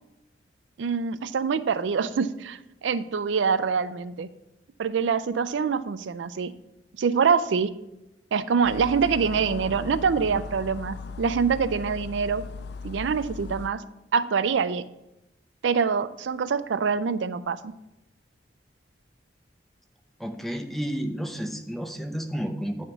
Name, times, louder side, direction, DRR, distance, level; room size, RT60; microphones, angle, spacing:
voice 1, 0.8-4.3 4.8-6.5 7.0-7.7 8.3-12.4 12.8-13.8 14.1-14.8 15.6-17.7, right 6 dB, 85° right, 14 dB, 0.4 m, -25 dB
sound 1, 8.6-13.7, left 4 dB, 60° left, 0.3 m, -37 dB
voice 2, 20.2-22.8, equal, ahead, 5 dB, 0.6 m, -31 dB
9.3 x 3.6 x 7.0 m, 0.91 s
head